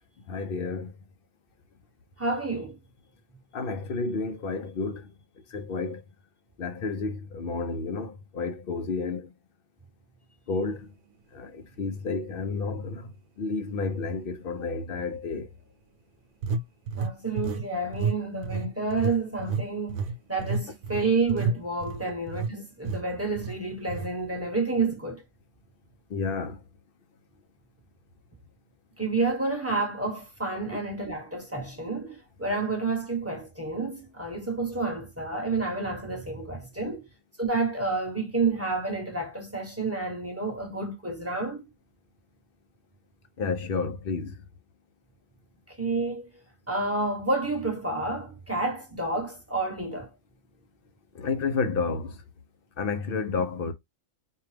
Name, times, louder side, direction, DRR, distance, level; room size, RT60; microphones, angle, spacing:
voice 1, 0.3-0.9 3.5-5.0 5.5-6.0 6.6-8.1 8.4-9.2 10.5-10.8 11.8-13.0 13.4-15.5 26.1-26.6 36.9-37.0 43.4-44.3 51.2-52.1 52.8-53.7, left 4 dB, 55° left, 0.7 m, -30 dB
voice 2, 2.2-2.8 17.0-20.0 20.3-25.2 29.0-37.0 37.4-41.6 45.7-46.3 46.7-50.1, right 3 dB, 10° right, 1.1 m, -29 dB
sound 1, 12.0-12.1 12.7-12.9 16.4-17.7 17.9-18.2 18.4-22.5 22.9-23.0 23.4-23.6 23.9-24.1, right 4 dB, 90° right, 1.1 m, -30 dB
4.5 x 2.4 x 3.2 m
omnidirectional pair, 1.4 m